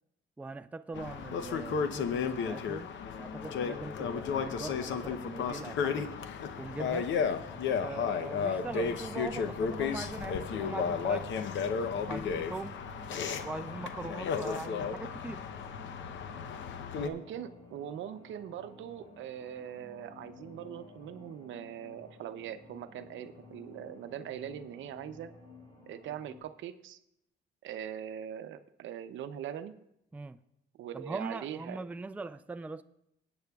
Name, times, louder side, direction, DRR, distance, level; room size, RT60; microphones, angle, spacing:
voice 1, 0.4-6.1 6.6-7.1 7.8-11.3 12.1-12.8 13.4-15.4 30.1-30.4 30.9-32.8, right 3 dB, 5° right, 0.3 m, -41 dB
sound 1, 0.9-17.1, left 6 dB, 70° left, 0.8 m, -33 dB
sound 2, 6.5-26.4, left 2 dB, 25° left, 4.0 m, -53 dB
voice 2, 16.9-25.3 25.9-27.0 27.6-29.7 30.8-31.8, right 9 dB, 75° right, 0.6 m, -41 dB
18.5 x 8.8 x 2.3 m
cardioid pair, 90°, 20 cm